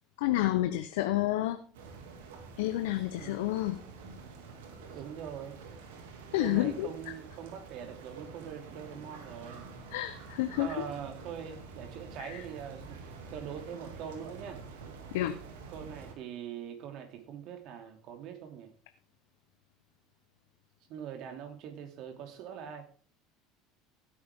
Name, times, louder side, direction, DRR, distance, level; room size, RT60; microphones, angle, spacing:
voice 1, 0.2-1.6 2.6-3.8 6.3-6.9 9.9-10.7 12.2-12.4 15.1-15.3, left 15 dB, 75° left, 9 dB, 0.8 m, -29 dB
sound 1, 1.7-16.1, right 4 dB, 80° right, 2.4 m, -48 dB
voice 2, 3.2-3.5 4.9-5.6 6.4-9.7 10.6-13.0 13.3-14.6 15.7-18.7 20.9-22.8, right 8 dB, 60° right, 5 dB, 2.8 m, -42 dB
16.5 x 9.4 x 3.6 m, 0.43 s
hypercardioid pair, 80°, 0 cm